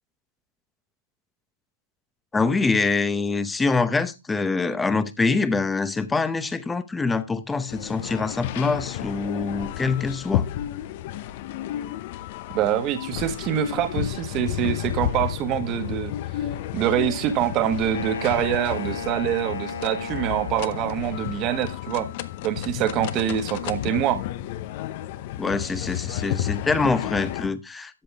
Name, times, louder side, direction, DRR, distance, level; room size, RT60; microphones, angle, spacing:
voice 1, 2.3-10.5 25.4-28.0, left 4 dB, 5° left, 0.8 m, -25 dB
sound 1, 7.7-27.5, left 12 dB, 40° left, 0.8 m, -32 dB
voice 2, 12.5-16.1 16.7-22.1 22.4-24.2, right 11 dB, 25° right, 1.5 m, -25 dB
Wind instrument woodwind instrument, 17.9-21.4, left 3 dB, 60° left, 3.7 m, -35 dB
13.0 x 8.6 x 3.4 m
hypercardioid pair, 140°, 0 cm